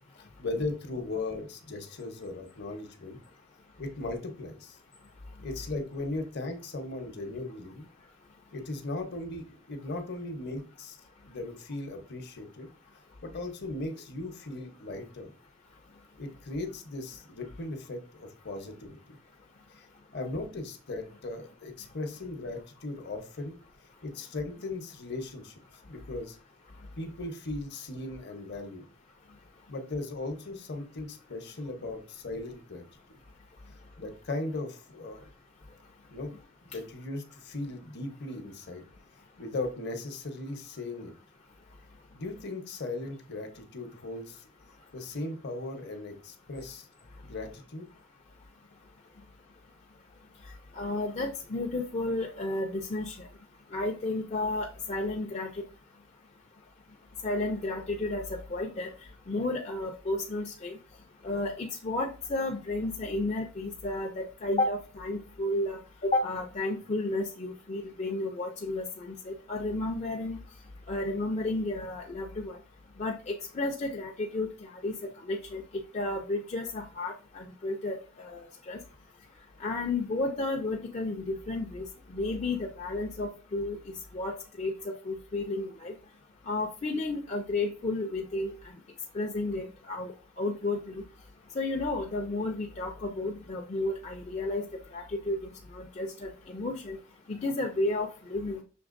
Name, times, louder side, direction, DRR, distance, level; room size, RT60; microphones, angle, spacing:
voice 1, 0.2-3.2 3.8-4.8 5.4-7.9 8.5-11.0 11.2-12.7 13.2-15.3 16.2-19.2 19.7-19.9 20.1-23.6 24.0-25.5 25.9-26.4 27.0-28.8 29.7-32.8 34.0-35.2 36.1-36.3 36.6-38.8 39.4-41.1 42.1-44.5 44.9-46.8 47.2-47.9, left 2 dB, 55° left, 5 dB, 0.8 m, -37 dB
voice 2, 50.8-53.3 53.7-55.5 57.2-58.9 59.3-60.8 61.2-70.4 70.9-72.6 73.0-74.5 74.8-74.9 75.3-75.6 75.9-78.8 79.6-83.8 84.1-85.9 86.5-88.5 89.1-90.1 90.4-91.0 91.6-94.7 94.9-95.4 95.7-97.0 97.3-98.6, left 2 dB, 30° left, 1 dB, 0.4 m, -32 dB
6.0 x 3.3 x 2.5 m, 0.35 s
head